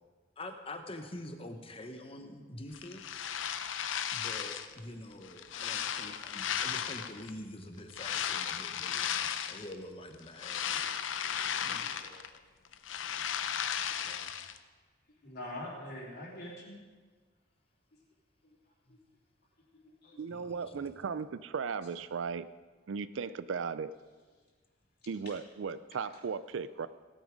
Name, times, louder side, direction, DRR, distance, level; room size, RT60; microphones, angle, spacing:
voice 1, 0.4-3.3 4.1-9.1 9.5-11.0 11.6-11.8 14.0-14.3 18.9-19.0 20.3-20.9, left 1 dB, 30° left, 6 dB, 1.1 m, -46 dB
sound 1, 2.7-4.8 5.2-7.3 7.9-9.7 10.1-12.4 12.6-14.6, left 9 dB, 90° left, 0.6 m, -35 dB
voice 2, 15.2-16.8 18.4-18.5 18.9-19.0 19.7-20.2 25.2-25.3, left 1 dB, 55° left, -5 dB, 3.4 m, -44 dB
voice 3, 20.2-22.5 22.9-23.9 25.1-26.9, right 5 dB, 85° right, 15 dB, 0.4 m, -36 dB
17.0 x 9.3 x 5.1 m, 1.5 s
head